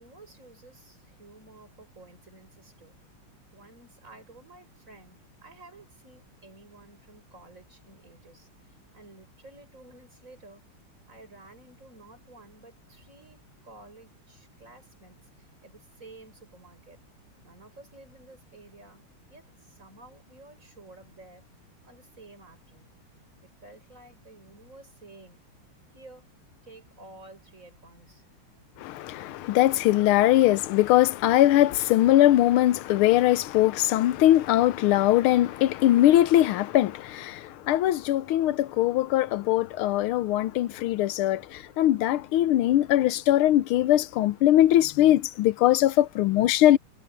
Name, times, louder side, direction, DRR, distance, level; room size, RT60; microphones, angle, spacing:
voice 1, 0.0-3.0 3.5-10.6 11.1-17.0 17.4-21.5 21.8-23.0 23.4-25.4 25.9-26.3 26.6-28.4, right 2 dB, 35° right, 7.2 m, -52 dB
voice 2, 28.8-46.8, left 14 dB, 90° left, 1.6 m, -21 dB
omnidirectional pair, 2.3 m